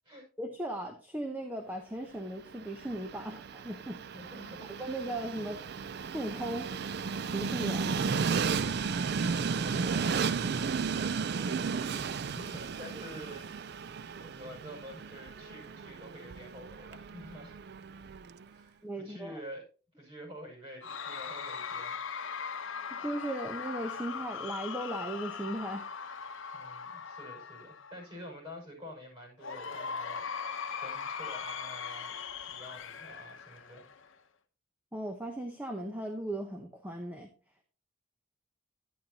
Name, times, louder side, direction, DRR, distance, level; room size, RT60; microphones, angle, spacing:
voice 1, 0.4-4.0 4.8-5.6 6.1-6.7 7.2-8.2 18.8-19.4 23.0-25.9 34.9-37.3, right 1 dB, 10° right, 4 dB, 0.8 m, -37 dB
Train, 2.4-18.4, right 5 dB, 50° right, 0.4 m, -34 dB
voice 2, 4.1-5.1 5.4-5.7 9.0-10.3 10.9-11.6 11.9-13.9 14.2-17.8 18.5-19.6 19.9-22.1 26.5-32.1 32.5-33.9, equal, 25° right, 0 dB, 6.0 m, -48 dB
Cheering / Crowd, 20.8-28.1 29.4-34.1, left 6 dB, 65° left, 1.0 m, -40 dB
11.5 x 10.0 x 2.9 m, 0.35 s
head